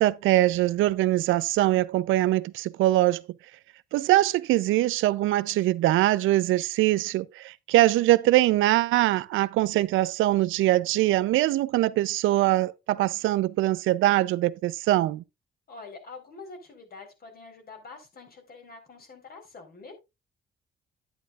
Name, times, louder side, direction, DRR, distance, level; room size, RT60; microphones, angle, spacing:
voice 1, 0.0-3.2 3.9-15.2, right 15 dB, 85° right, 0.5 m, -23 dB
voice 2, 15.7-19.9, left 4 dB, 50° left, 4.1 m, -45 dB
10.5 x 10.0 x 2.4 m
cardioid pair, 90°, 20 cm